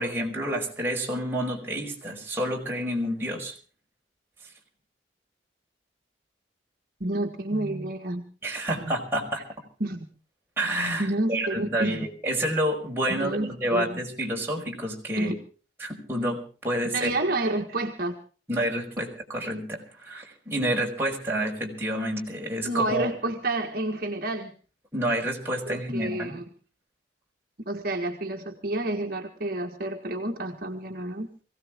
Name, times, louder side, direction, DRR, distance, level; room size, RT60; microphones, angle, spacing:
voice 1, 0.0-3.5 8.4-9.4 10.6-15.3 15.8-17.1 18.5-23.1 24.9-26.4, right 1 dB, 15° right, -1 dB, 4.9 m, -29 dB
voice 2, 7.0-8.2 8.9-9.0 9.8-10.1 11.0-12.1 13.1-14.0 15.2-15.4 16.9-18.2 22.6-24.5 25.7-26.4 27.7-31.3, right 2 dB, 50° right, 2 dB, 1.7 m, -29 dB
23.0 x 17.0 x 3.6 m, 0.39 s
head